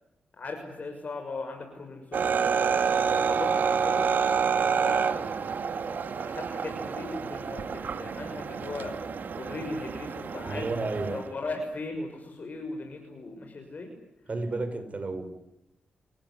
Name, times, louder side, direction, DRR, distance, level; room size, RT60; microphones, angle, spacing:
voice 1, 0.3-2.8 3.0-4.1 4.6-5.5 5.8-10.7 11.1-13.9, left 3 dB, 50° left, 3 dB, 6.5 m, -38 dB
sound 1, 2.1-11.3, right 6 dB, 65° right, 2.2 m, -28 dB
voice 2, 10.5-11.2 14.3-15.2, right 3 dB, 40° right, 8 dB, 6.2 m, -31 dB
29.5 x 17.0 x 10.0 m, 0.86 s
cardioid pair, 75°, 3 cm